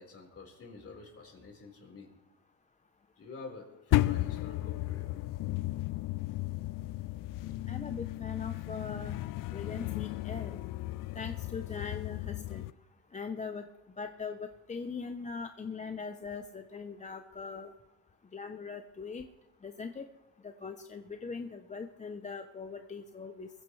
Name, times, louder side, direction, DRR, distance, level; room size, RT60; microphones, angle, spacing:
voice 1, 0.0-2.1 3.2-5.2, left 4 dB, 35° left, 1 dB, 4.4 m, -48 dB
sound 1, 3.9-12.7, left 17 dB, 55° left, 0.5 m, -34 dB
voice 2, 7.7-9.2 9.5-10.6 11.1-12.6 13.1-13.7 14.0-17.7 18.3-19.3 19.6-20.1 20.4-23.5, left 5 dB, 20° left, 7 dB, 0.7 m, -41 dB
22.0 x 15.5 x 3.2 m, 1.0 s
cardioid pair, 115°, 40 cm